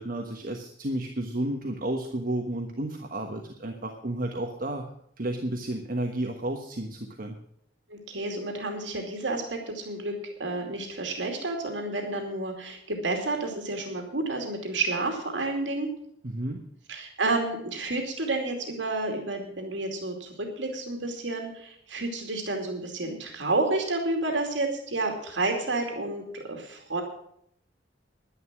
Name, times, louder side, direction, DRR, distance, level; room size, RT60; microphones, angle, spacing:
voice 1, 0.0-4.9 5.2-7.4 16.2-16.6, right 1 dB, 50° right, 3 dB, 1.4 m, -32 dB
voice 2, 7.9-10.1 10.4-15.9 16.9-27.0, right 2 dB, 90° right, 3 dB, 2.6 m, -30 dB
11.0 x 10.5 x 6.1 m, 0.69 s
head